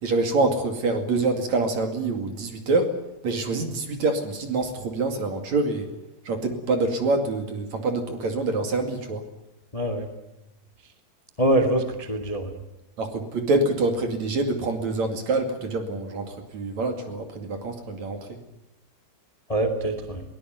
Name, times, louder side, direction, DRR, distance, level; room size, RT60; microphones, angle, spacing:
voice 1, 0.0-2.9 3.2-5.9 6.2-9.2 13.0-18.4, right 3 dB, 45° right, 6 dB, 3.1 m, -26 dB
voice 2, 9.7-10.1 11.4-12.5 19.5-20.2, right 1 dB, 15° left, 6 dB, 1.1 m, -24 dB
22.0 x 19.5 x 9.3 m, 0.91 s
omnidirectional pair, 5.0 m